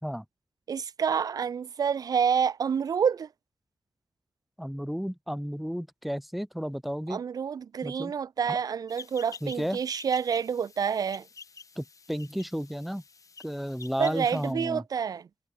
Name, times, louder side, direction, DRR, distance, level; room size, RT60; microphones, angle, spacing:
voice 1, 0.7-3.3 7.1-11.2 14.0-15.2, right 7 dB, 85° right, 1.0 m, -28 dB
voice 2, 4.6-7.2 7.8-8.1 8.5-8.6 9.4-9.8 11.8-13.0 13.4-14.8, equal, ahead, 2.1 m, -33 dB
sound 1, 8.9-14.5, left 5 dB, 65° left, 1.4 m, -48 dB
cardioid pair, 60°, 6 cm